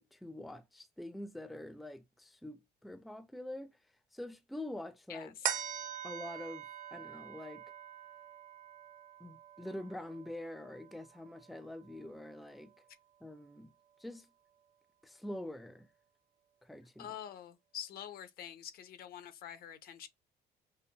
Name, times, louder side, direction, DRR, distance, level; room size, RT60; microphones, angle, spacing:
voice 1, 0.0-3.8 4.1-5.3 6.0-7.6 9.2-12.7 13.2-13.7 14.0-14.3 15.0-15.9 16.6-17.1, left 1 dB, ahead, 0.4 m, -45 dB
voice 2, 5.1-5.5 17.0-20.1, left 10 dB, 65° left, 0.6 m, -46 dB
sound 1, 5.4-12.2 12.7-12.8, right 9 dB, 50° right, 0.6 m, -43 dB
5.4 x 2.0 x 2.2 m
cardioid pair, 110°, 17 cm